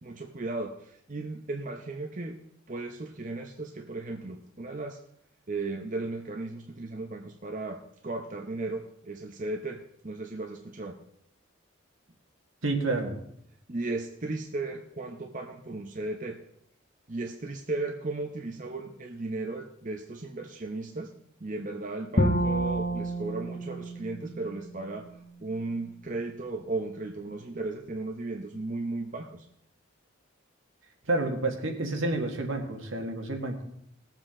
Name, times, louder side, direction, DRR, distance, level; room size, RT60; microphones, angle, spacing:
voice 1, 0.0-2.4 2.7-5.0 5.5-11.0 13.7-16.4 17.1-21.1 21.4-25.1 25.4-29.5, right 2 dB, 40° right, 3 dB, 0.8 m, -35 dB
voice 2, 12.6-13.1 31.1-33.6, right 2 dB, 70° right, 3 dB, 1.8 m, -29 dB
Bowed string instrument, 22.2-25.3, right 1 dB, 40° left, 1.1 m, -29 dB
19.5 x 7.5 x 3.8 m, 0.72 s
head